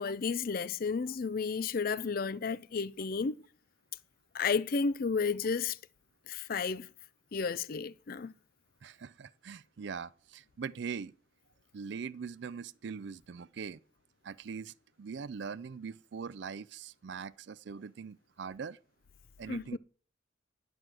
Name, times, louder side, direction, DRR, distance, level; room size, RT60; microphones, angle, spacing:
voice 1, 0.0-3.3 4.3-5.8 6.3-6.9 7.3-8.3 19.5-19.8, left 5 dB, 45° left, 0.4 m, -32 dB
voice 2, 8.8-11.1 11.7-13.8 14.2-18.8 19.4-19.8, right 6 dB, 55° right, 0.4 m, -42 dB
11.0 x 4.7 x 7.6 m
head